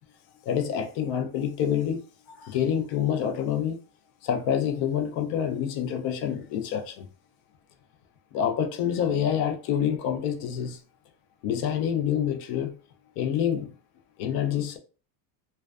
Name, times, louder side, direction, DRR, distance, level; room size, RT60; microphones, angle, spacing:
voice 1, 0.5-2.0 2.3-3.8 4.2-7.1 8.3-10.8 11.4-12.8 13.2-13.7 14.2-14.8, left 9 dB, 50° left, 0.5 m, -27 dB
2.4 x 2.2 x 2.3 m
cardioid pair, 155°, 49 cm